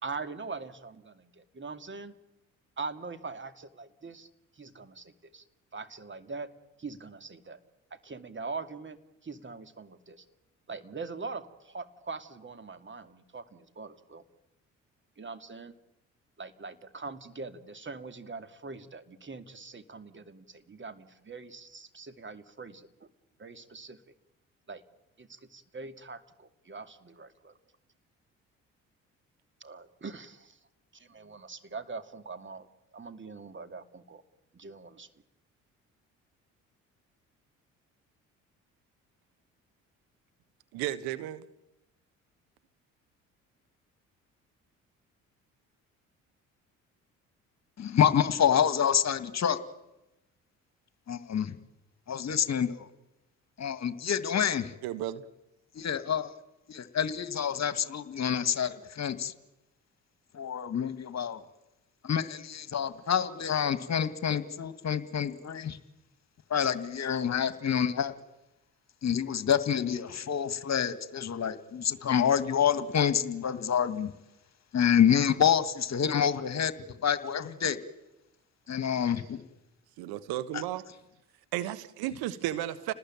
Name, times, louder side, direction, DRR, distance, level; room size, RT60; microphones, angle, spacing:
voice 1, 0.0-2.1 2.8-4.3 4.5-5.4 5.7-6.5 6.8-7.6 7.9-9.0 9.2-10.2 10.7-14.2 15.2-15.7 16.4-23.1 23.4-24.0 24.7-24.8 25.2-27.6 29.6-30.6 30.9-32.7 32.9-34.2 34.5-35.1, right 4 dB, 30° right, 10 dB, 2.6 m, -42 dB
voice 2, 40.7-41.4 54.8-55.2 80.0-80.8 81.5-82.9, right 13 dB, 70° right, 13 dB, 1.4 m, -33 dB
voice 3, 47.8-49.6 51.1-51.6 52.1-52.9 53.6-54.7 55.8-56.3 56.7-59.3 60.3-61.4 62.0-65.8 66.5-68.1 69.0-74.1 74.7-76.7 77.0-77.8 78.7-79.4 80.5-80.6, left 8 dB, 45° left, 13 dB, 2.0 m, -27 dB
29.5 x 19.5 x 9.1 m, 0.94 s
hypercardioid pair, 50°, 38 cm